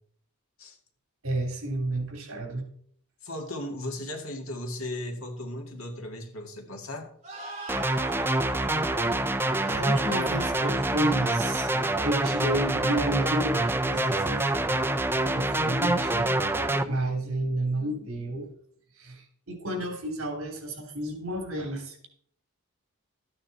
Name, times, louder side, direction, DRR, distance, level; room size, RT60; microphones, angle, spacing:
voice 1, 1.2-2.6 9.1-9.2 9.7-11.7 12.0-14.5 15.1-18.5 19.0-22.1, right 1 dB, 65° right, 3 dB, 3.2 m, -31 dB
voice 2, 3.2-7.1, left 1 dB, 65° left, 3 dB, 2.2 m, -36 dB
sound 1, 7.2-13.7, right 2 dB, 30° right, 4.7 m, -42 dB
sound 2, 7.7-16.8, right 2 dB, 10° right, 0.6 m, -26 dB
13.0 x 9.0 x 4.2 m, 0.63 s
head